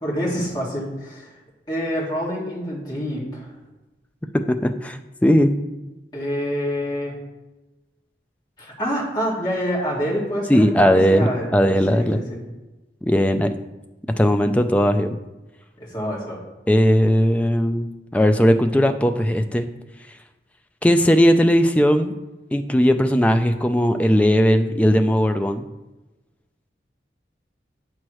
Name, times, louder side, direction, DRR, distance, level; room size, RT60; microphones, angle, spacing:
voice 1, 0.0-1.3 1.7-3.5 6.1-7.1 8.6-11.5 11.9-12.4 15.8-16.4, equal, 25° left, -6 dB, 2.0 m, -27 dB
voice 2, 4.3-5.5 10.5-12.2 13.0-13.5 14.2-15.2 16.7-19.7 20.8-22.1 22.5-25.6, equal, 10° left, 6 dB, 0.3 m, -18 dB
8.4 x 6.3 x 3.1 m, 1.1 s
head